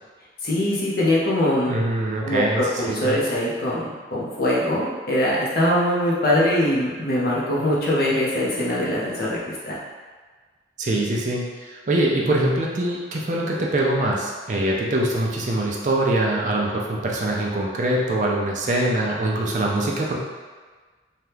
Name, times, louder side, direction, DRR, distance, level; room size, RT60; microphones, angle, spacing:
voice 1, 0.4-1.8 2.2-9.8, left 1 dB, 55° left, -5 dB, 0.7 m, -22 dB
voice 2, 1.7-3.2 10.8-20.2, right 1 dB, 40° right, -2 dB, 0.4 m, -23 dB
2.8 x 2.3 x 3.3 m, 1.4 s
head